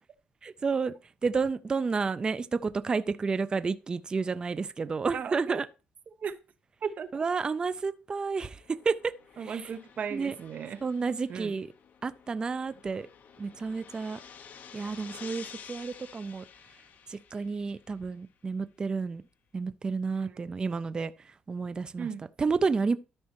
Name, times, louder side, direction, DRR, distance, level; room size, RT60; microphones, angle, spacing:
voice 1, 0.4-0.9 1.2-5.7 7.1-9.1 9.4-9.7 10.1-10.4 10.8-11.7 12.0-13.1 13.4-14.2 14.7-16.4 17.1-19.2 19.5-22.1 22.4-23.0, right 4 dB, 25° right, 0.3 m, -30 dB
voice 2, 5.1-5.6 6.2-6.3 6.8-7.2 9.4-10.8 11.3-11.5 20.2-20.4 22.0-22.3, right 7 dB, 45° right, 0.8 m, -36 dB
sound 1, 8.5-18.1, left 7 dB, 55° left, 0.9 m, -51 dB
13.0 x 5.4 x 2.9 m
cardioid pair, 130°, 3 cm